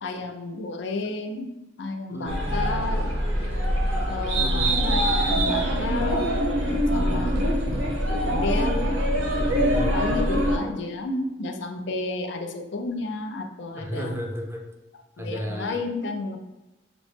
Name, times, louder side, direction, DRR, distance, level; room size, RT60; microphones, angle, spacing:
voice 1, 0.0-1.5 1.8-3.1 4.1-6.3 6.9-7.4 8.1-8.9 9.9-14.1 15.2-16.4, left 3 dB, 65° left, 5 dB, 0.5 m, -31 dB
voice 2, 2.1-3.2 4.4-4.7 7.0-7.5 9.4-10.3 13.8-14.6 15.2-15.8, equal, 15° right, 1 dB, 0.5 m, -34 dB
sound 1, 2.3-10.6, equal, 80° right, 0.9 m, -24 dB
5.9 x 2.1 x 3.3 m, 1.0 s
head